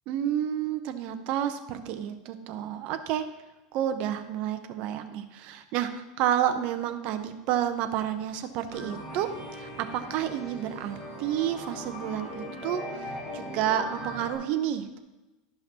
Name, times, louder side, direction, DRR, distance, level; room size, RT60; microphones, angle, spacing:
voice 1, 0.1-3.3 3.7-13.0 13.3-15.0, right 10 dB, 45° right, 8 dB, 0.7 m, -30 dB
sound 1, 8.7-14.4, left 1 dB, 15° left, 2.4 m, -39 dB
12.0 x 5.6 x 2.9 m, 1.1 s
supercardioid pair, 160°, 3 cm